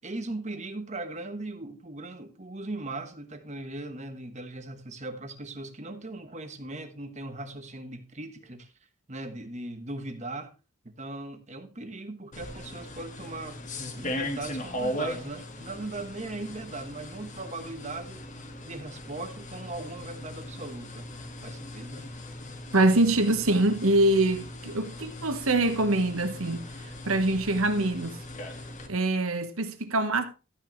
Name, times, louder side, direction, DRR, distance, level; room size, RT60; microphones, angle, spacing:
voice 1, 0.0-8.7 9.1-10.5 10.8-13.6 14.0-18.2 18.6-21.1 21.4-22.1, right 2 dB, 30° right, 1.3 m, -39 dB
sound 1, 12.3-28.9, left 1 dB, 35° left, 1.8 m, -39 dB
voice 2, 22.7-26.7 27.0-28.2 28.9-30.2, right 2 dB, 75° right, 1.4 m, -24 dB
13.0 x 9.1 x 3.2 m
head